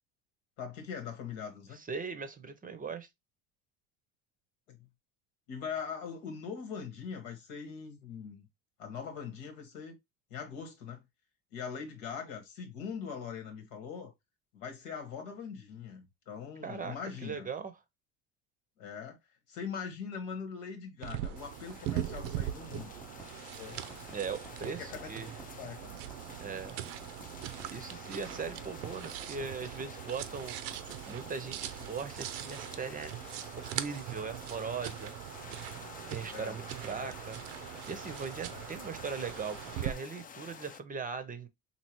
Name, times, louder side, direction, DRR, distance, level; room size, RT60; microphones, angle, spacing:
voice 1, 0.6-1.8 4.7-4.8 5.5-8.5 8.8-9.9 10.3-11.0 11.5-14.1 14.5-17.5 18.8-19.2 19.5-23.0 23.6-23.9 24.8-26.0 36.3-36.6 37.0-37.2 38.5-38.6, left 6 dB, 85° left, 1.4 m, -42 dB
voice 2, 1.7-3.1 16.6-17.7 24.1-25.3 26.4-26.8 27.7-30.6 31.1-33.1 33.6-35.2 36.1-37.4 37.9-41.5, right 5 dB, 20° right, 0.6 m, -39 dB
sound 1, 21.0-39.9, right 12 dB, 80° right, 0.6 m, -41 dB
sound 2, 21.4-40.8, left 7 dB, 25° left, 0.3 m, -51 dB
sound 3, 21.7-23.3 23.9-25.5 26.1-27.7 28.3-29.9 30.7-32.3, right 1 dB, ahead, 0.9 m, -53 dB
4.3 x 2.8 x 2.9 m
supercardioid pair, 100°, 37 cm